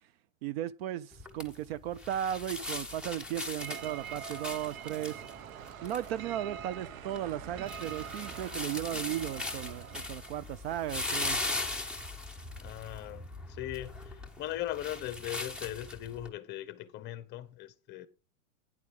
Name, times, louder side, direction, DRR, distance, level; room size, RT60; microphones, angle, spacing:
voice 1, 0.4-5.3 5.8-11.4, right 12 dB, 50° right, 0.5 m, -36 dB
sound 1, 1.1-16.3, left 2 dB, ahead, 0.9 m, -40 dB
Distant bells and traffic, 3.6-10.6, right 9 dB, 80° right, 0.9 m, -45 dB
voice 2, 12.6-18.1, left 14 dB, 25° left, 0.9 m, -39 dB
11.5 x 9.7 x 3.6 m
supercardioid pair, 140°, 40 cm